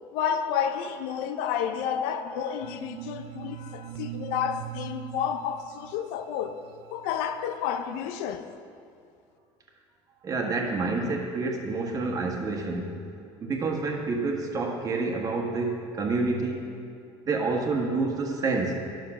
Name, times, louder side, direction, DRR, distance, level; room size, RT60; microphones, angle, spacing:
voice 1, 0.1-6.6 6.9-8.5, left 8 dB, 80° left, 0.7 m, -30 dB
sound 1, 2.6-7.8, right 13 dB, 85° right, 0.5 m, -42 dB
voice 2, 10.2-13.0 13.4-16.6 17.2-18.7, right 3 dB, 30° right, 1.5 m, -28 dB
9.9 x 6.5 x 6.0 m
cardioid pair, 125°, 11 cm